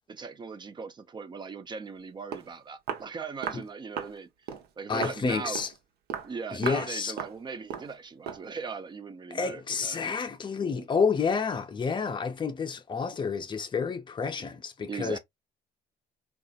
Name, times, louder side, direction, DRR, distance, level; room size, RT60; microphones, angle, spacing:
voice 1, 0.1-4.3 4.8-5.6 6.2-10.1 10.6-10.9 14.9-15.2, right 5 dB, 25° right, 0.6 m, -39 dB
Walk footsteps, 2.0-2.1 2.3-2.5 2.9-3.1 3.4-3.7 4.0-4.2 4.5-4.7 5.0-5.2 5.5-5.8 6.1-6.3 6.6-6.9 7.2-7.4 7.7-7.9 8.3-8.5, right 8 dB, 70° right, 0.8 m, -35 dB
voice 2, 4.9-5.7 6.5-7.1 9.3-15.2, left 5 dB, 30° left, 0.6 m, -29 dB
3.8 x 2.4 x 2.3 m
cardioid pair, 110°, 17 cm